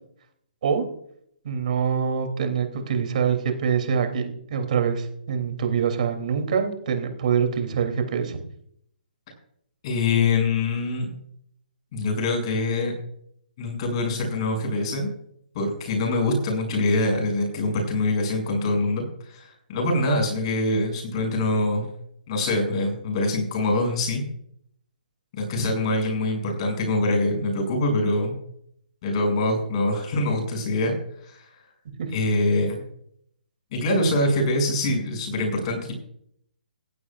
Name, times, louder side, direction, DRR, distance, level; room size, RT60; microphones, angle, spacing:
voice 1, 1.4-8.4, right 7 dB, 55° right, 5 dB, 3.0 m, -25 dB
voice 2, 9.8-11.1 11.9-12.9 13.6-15.1 15.6-21.9 22.3-24.2 25.4-28.3 29.0-30.9 31.2-31.6 32.1-32.9 33.7-35.9, left 2 dB, 40° left, 2 dB, 6.9 m, -24 dB
17.0 x 15.5 x 2.5 m, 0.69 s
hypercardioid pair, 155°, 5 cm